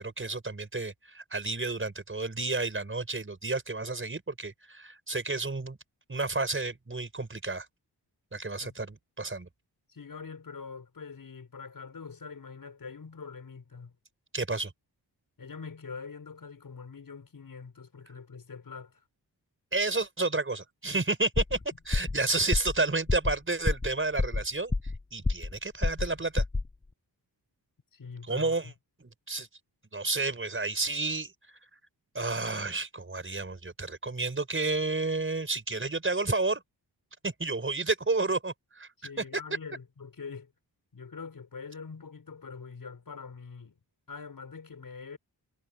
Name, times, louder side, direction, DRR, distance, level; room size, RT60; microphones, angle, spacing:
voice 1, 0.0-5.8 6.1-7.7 8.3-9.5 14.3-14.7 19.7-21.6 21.9-26.4 28.3-28.7 29.0-29.5 29.9-31.6 32.1-36.6 37.2-38.9, right 3 dB, 30° right, 5.7 m, -31 dB
voice 2, 9.9-14.0 15.4-19.0 27.9-28.7 39.0-40.5 40.9-43.8 44.1-45.2, left 5 dB, 55° left, 6.1 m, -44 dB
sound 1, 21.3-21.6 21.9-22.2 22.5-22.8 23.1-23.3 23.7-23.9 24.2-25.0 25.2-25.6 25.8-26.1 26.4-26.7, left 3 dB, 10° left, 0.3 m, -28 dB
wide cardioid pair, 100°, 41 cm